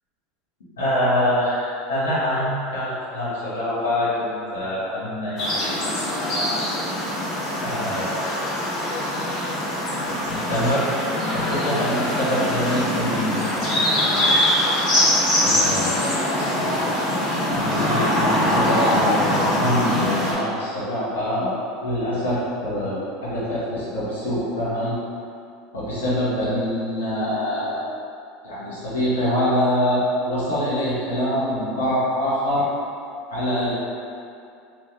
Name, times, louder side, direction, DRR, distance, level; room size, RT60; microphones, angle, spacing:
voice 1, 0.8-6.6 7.6-8.6 10.0-10.9 11.3-14.3 15.4-16.8 17.5-21.5 21.8-25.0 25.7-27.8 28.4-32.7 33.3-33.7, left 1 dB, 80° left, -9 dB, 1.1 m, -25 dB
sound 1, 5.4-20.3, left 1 dB, 55° left, 1.3 m, -23 dB
3.1 x 2.6 x 3.5 m, 2.6 s
hypercardioid pair, 80°, 0 cm